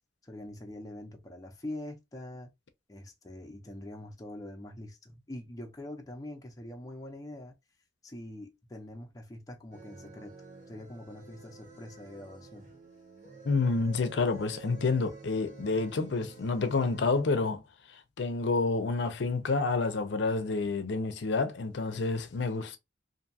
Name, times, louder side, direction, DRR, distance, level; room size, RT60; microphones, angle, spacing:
voice 1, 0.2-2.5 2.9-7.5 8.0-10.3 10.7-12.7, left 1 dB, 20° left, 0.5 m, -44 dB
sound 1, 9.7-17.2, right 3 dB, 40° right, 1.0 m, -50 dB
voice 2, 13.4-17.6 18.2-22.8, left 3 dB, 70° left, 0.5 m, -29 dB
2.6 x 2.3 x 2.7 m
head